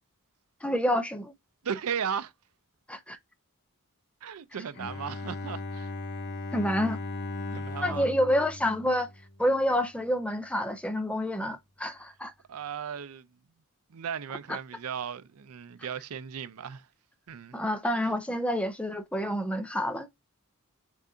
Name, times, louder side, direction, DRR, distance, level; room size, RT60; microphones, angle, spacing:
voice 1, 0.6-1.3 2.9-3.2 6.5-7.0 7.8-9.1 9.4-12.3 17.5-20.1, equal, 5° left, 0.6 m, -28 dB
voice 2, 1.6-2.3 4.2-5.9 7.5-8.1 12.5-13.3 13.9-16.9 17.3-17.6, right 7 dB, 80° right, 0.5 m, -36 dB
Bowed string instrument, 4.7-9.7, left 2 dB, 50° left, 0.7 m, -37 dB
7.2 x 2.4 x 2.7 m
head